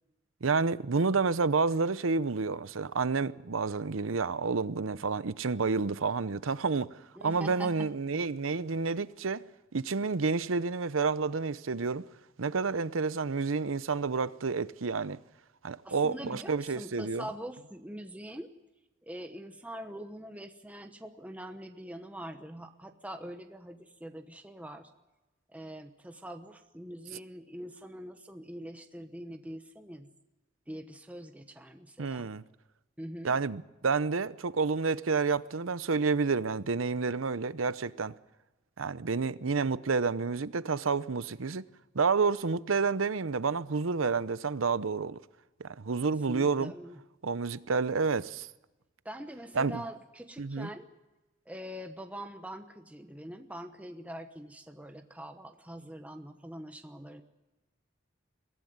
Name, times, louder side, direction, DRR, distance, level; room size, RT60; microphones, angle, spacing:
voice 1, 0.4-6.9 7.2-9.4 9.7-12.1 12.4-15.2 15.6-17.3 32.0-32.4 33.2-38.1 38.8-41.7 41.9-45.2 45.6-46.7 47.2-48.5 49.6-49.8 50.4-50.7, right 4 dB, 90° right, 0.8 m, -29 dB
voice 2, 7.2-7.9 15.8-18.5 19.0-24.9 25.5-30.1 30.7-32.3 33.0-33.3 46.3-47.0 49.0-50.9 51.5-57.2, equal, 5° right, 1.0 m, -43 dB
22.5 x 16.0 x 9.4 m
head